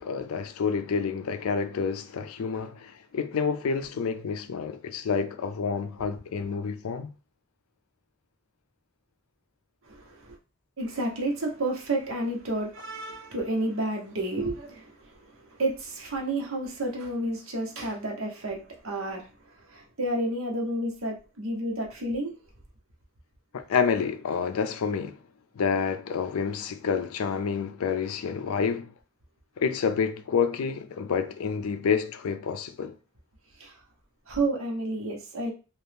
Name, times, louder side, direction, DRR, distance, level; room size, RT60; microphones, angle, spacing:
voice 1, 0.0-7.1 23.5-25.2 25.6-28.9 29.6-32.9, left 6 dB, 80° left, 0.4 m, -28 dB
voice 2, 9.8-10.4 10.8-22.4 33.6-33.8 34.3-35.5, right 1 dB, 70° right, 0.9 m, -31 dB
2.8 x 2.4 x 3.3 m
head